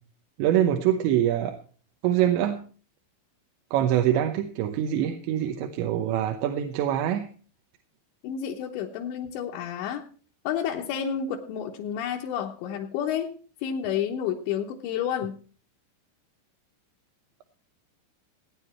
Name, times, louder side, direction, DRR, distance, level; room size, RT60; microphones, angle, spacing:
voice 1, 0.4-1.6 2.0-2.6 3.7-7.3, right 11 dB, 80° right, 6 dB, 3.2 m, -24 dB
voice 2, 8.2-10.0 10.4-13.3 13.6-15.4, left 8 dB, 80° left, -1 dB, 3.3 m, -30 dB
17.5 x 9.8 x 4.4 m, 0.40 s
omnidirectional pair, 5.3 m